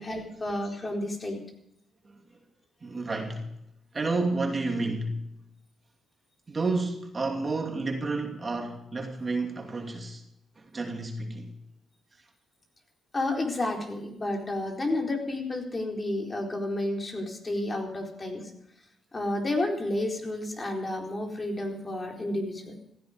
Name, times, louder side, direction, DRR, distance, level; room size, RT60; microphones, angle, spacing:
voice 1, 0.0-1.4 13.1-18.5 19.1-22.8, left 1 dB, 25° left, 4.3 m, -31 dB
voice 2, 2.0-2.4 2.8-3.5 3.9-5.2 6.5-10.2 10.6-11.5, right 3 dB, 30° right, 2.7 m, -31 dB
16.0 x 15.0 x 5.2 m
cardioid pair, 90°, 0 cm